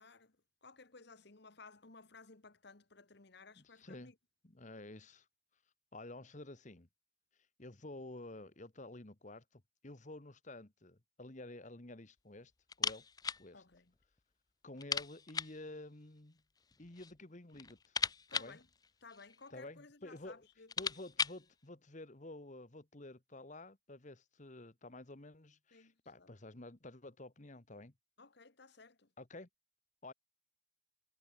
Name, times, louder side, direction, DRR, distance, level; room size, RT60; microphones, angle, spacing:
voice 1, 0.0-4.2 13.5-13.9 18.3-18.7 19.0-20.9 25.7-26.3 28.2-29.1, left 4 dB, 55° left, 1.4 m, -58 dB
voice 2, 3.6-4.1 4.4-5.2 5.9-6.9 7.6-12.5 12.8-13.1 13.4-13.6 14.6-16.4 16.8-18.0 18.3-18.6 19.5-20.5 20.8-27.9 29.2-29.5 30.0-30.1, left 2 dB, 35° left, 1.4 m, -51 dB
sound 1, 12.7-13.5 13.7-13.8 14.2-14.3 14.8-15.6 16.6-17.2 17.5-19.5 20.2-20.3 20.5-21.5, left 6 dB, 20° left, 0.5 m, -38 dB
head